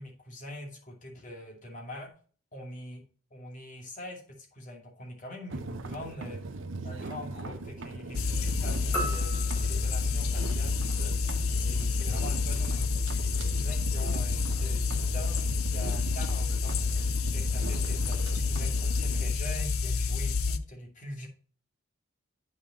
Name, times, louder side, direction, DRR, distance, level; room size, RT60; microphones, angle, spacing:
voice 1, 0.0-2.1 2.5-3.0 3.3-6.4 6.8-21.3, left 1 dB, 35° left, 0 dB, 2.3 m, -43 dB
sound 1, 5.5-19.4, right 3 dB, 65° right, 0.6 m, -40 dB
sound 2, 8.1-20.6, left 4 dB, 85° left, 0.6 m, -29 dB
sound 3, 8.9-11.4, right 1 dB, 5° left, 3.1 m, -38 dB
8.3 x 5.8 x 4.0 m, 0.41 s
head